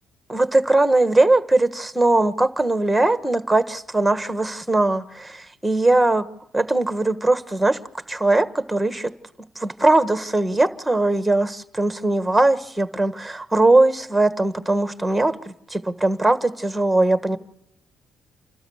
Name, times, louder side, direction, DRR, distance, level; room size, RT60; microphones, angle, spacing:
voice 1, 0.3-6.3 6.5-7.8 8.1-9.1 9.6-17.4, right 2 dB, 5° right, 1.4 m, -20 dB
28.0 x 13.0 x 8.0 m
cardioid pair, 90°, 0 cm